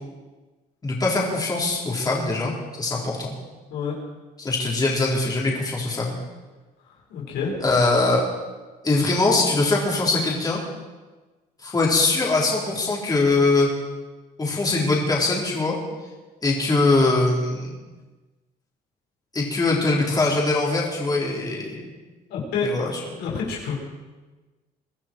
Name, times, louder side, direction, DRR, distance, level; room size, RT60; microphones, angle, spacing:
voice 1, 0.8-2.5 2.8-3.3 4.4-6.2 7.6-8.3 8.8-10.6 11.6-13.7 14.4-15.8 16.4-17.7 19.3-21.8 22.6-22.9, left 3 dB, 20° left, -4 dB, 4.1 m, -22 dB
voice 2, 7.1-7.6 22.3-22.7 23.2-23.7, left 5 dB, 85° left, -3 dB, 5.1 m, -27 dB
23.5 x 13.0 x 4.6 m, 1.2 s
cardioid pair, 110°, 17 cm